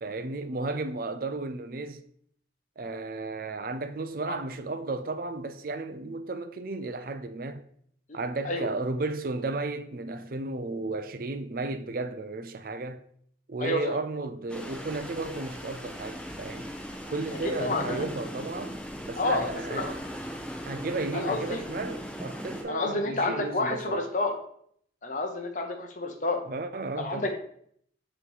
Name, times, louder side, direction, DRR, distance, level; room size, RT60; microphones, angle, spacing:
voice 1, 0.0-2.0 2.8-7.6 8.1-13.0 13.5-16.7 17.1-20.1 20.7-24.1 26.5-27.3, right 3 dB, 50° right, 0.5 m, -34 dB
voice 2, 13.6-14.0 17.4-18.1 19.2-19.9 21.1-21.6 22.7-24.3 25.0-26.4 27.0-27.3, left 2 dB, 40° left, 0.8 m, -29 dB
sound 1, 14.5-22.6, equal, 5° left, 0.9 m, -39 dB
5.7 x 3.1 x 5.4 m
head